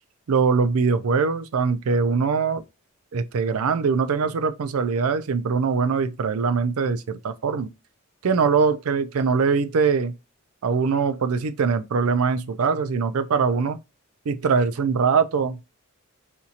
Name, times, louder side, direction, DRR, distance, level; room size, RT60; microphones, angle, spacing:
voice 1, 0.3-2.6 3.1-7.7 8.2-10.1 10.6-13.8 14.3-15.6, right 5 dB, 85° right, 0.4 m, -22 dB
4.3 x 2.8 x 2.4 m
head